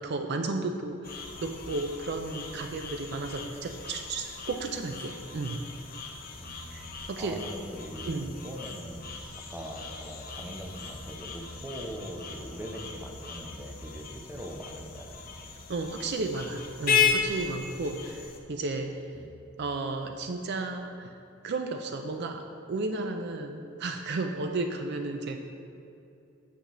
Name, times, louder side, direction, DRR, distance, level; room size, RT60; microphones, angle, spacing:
voice 1, 0.0-5.6 6.7-7.4 8.0-8.3 15.7-19.0 19.6-21.2 21.4-25.4, right 3 dB, 50° right, 5 dB, 0.4 m, -33 dB
sound 1, 1.0-18.4, left 6 dB, 40° left, 0.7 m, -35 dB
voice 2, 6.4-9.2 9.5-15.1 19.2-19.4, equal, 10° right, 0 dB, 0.6 m, -41 dB
8.3 x 7.8 x 3.1 m, 2.7 s
head